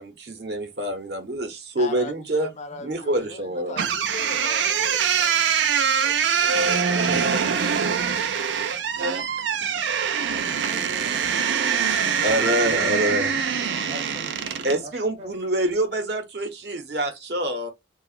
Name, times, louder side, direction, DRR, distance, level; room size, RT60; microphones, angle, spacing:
voice 1, 0.0-2.5 2.8-3.8 7.1-7.7 11.8-13.3 14.6-17.7, right 1 dB, 65° right, 0.8 m, -26 dB
voice 2, 1.8-5.3 6.0-7.1 12.5-13.5, left 2 dB, 40° left, 0.5 m, -39 dB
sound 1, 3.8-14.8, right 7 dB, 90° right, 0.4 m, -23 dB
voice 3, 10.3-12.6 13.9-14.3 14.8-14.9 15.2-15.3, right 1 dB, 35° right, 0.7 m, -43 dB
2.9 x 2.3 x 2.4 m
head